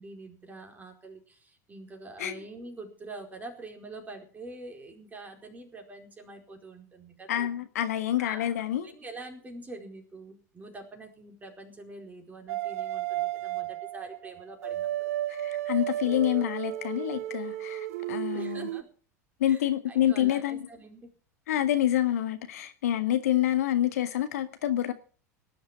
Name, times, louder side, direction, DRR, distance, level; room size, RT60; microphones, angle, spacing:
voice 1, 0.0-7.6 8.2-8.4 8.8-15.1 18.3-18.9 19.5-21.1, right 2 dB, 15° right, 4.6 m, -45 dB
voice 2, 7.3-8.9 15.3-18.7 19.4-20.6 21.5-24.9, left 12 dB, 60° left, 1.6 m, -27 dB
sound 1, 12.5-18.8, right 13 dB, 60° right, 0.7 m, -33 dB
18.5 x 11.0 x 6.0 m
figure-of-eight pair, 80°, 9 cm